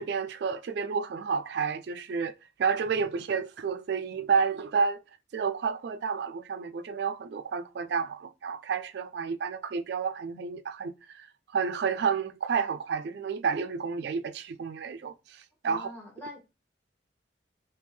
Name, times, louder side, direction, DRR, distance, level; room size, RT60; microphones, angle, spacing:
voice 1, 0.0-2.3 2.6-5.0 5.3-11.3 11.5-15.9, right 6 dB, 55° right, 0.3 m, -30 dB
voice 2, 15.7-16.4, left 1 dB, 10° left, 1.1 m, -43 dB
3.5 x 2.8 x 3.1 m
head